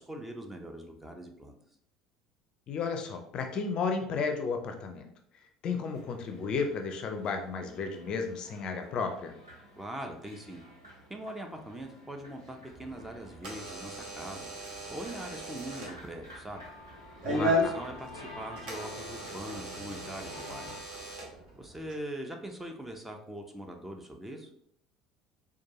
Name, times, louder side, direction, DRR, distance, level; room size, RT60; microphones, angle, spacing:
voice 1, 0.0-1.5 9.8-10.6 11.1-16.6 17.3-20.8 21.6-24.5, right 1 dB, 10° right, 4 dB, 0.6 m, -42 dB
voice 2, 2.7-5.1 5.6-9.3 17.2-17.7, left 5 dB, 40° left, 5 dB, 0.5 m, -33 dB
sound 1, 5.8-20.8, left 1 dB, 85° right, 1.1 m, -50 dB
Door / Alarm, 12.7-21.9, equal, 50° right, 1.1 m, -36 dB
4.4 x 2.3 x 2.9 m, 0.69 s
figure-of-eight pair, 65°, 2 cm